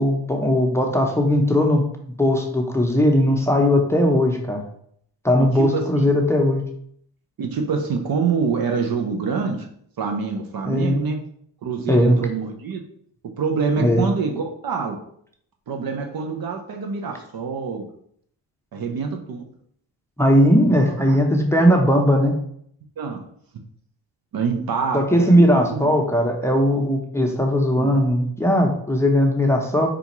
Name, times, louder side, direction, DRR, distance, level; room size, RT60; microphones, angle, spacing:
voice 1, 0.0-1.9 2.2-4.6 5.2-6.6 10.7-11.0 11.9-12.2 13.8-14.0 20.2-22.3 24.9-29.9, equal, 5° left, 2 dB, 0.7 m, -18 dB
voice 2, 5.6-6.1 7.4-9.7 10.0-11.2 11.6-12.8 13.4-15.0 15.7-17.9 18.7-19.5 20.6-20.7 21.1-21.2 23.0-23.3 24.3-25.4 25.7-25.9 27.8-27.9, right 5 dB, 45° right, 4 dB, 0.7 m, -26 dB
5.0 x 2.4 x 3.0 m, 0.66 s
supercardioid pair, 60°, 49 cm